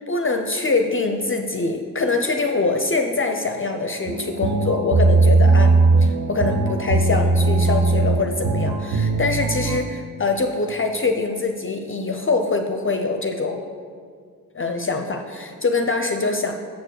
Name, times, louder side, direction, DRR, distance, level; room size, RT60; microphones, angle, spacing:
voice 1, 0.1-5.7 6.0-13.6 14.5-16.5, left 3 dB, 35° left, 5 dB, 0.5 m, -24 dB
sound 1, 4.1-9.8, right 3 dB, 80° right, 0.5 m, -19 dB
6.9 x 4.5 x 6.2 m, 2.1 s
wide cardioid pair, 85°, 35 cm